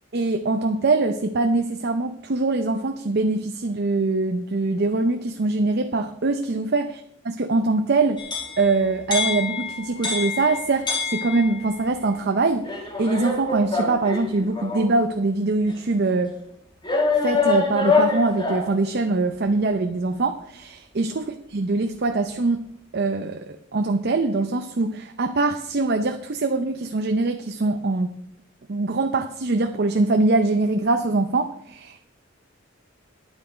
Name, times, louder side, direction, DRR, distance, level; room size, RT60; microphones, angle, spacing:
voice 1, 0.1-7.0 7.3-8.2 8.6-16.3 17.2-22.6 22.9-28.2 28.7-32.1, right 3 dB, 55° right, 7 dB, 0.6 m, -23 dB
sound 1, 8.2-11.8 12.6-14.9 15.7-15.8 16.8-18.8, left 4 dB, 25° left, 1.7 m, -25 dB
10.0 x 8.5 x 5.1 m, 0.74 s
head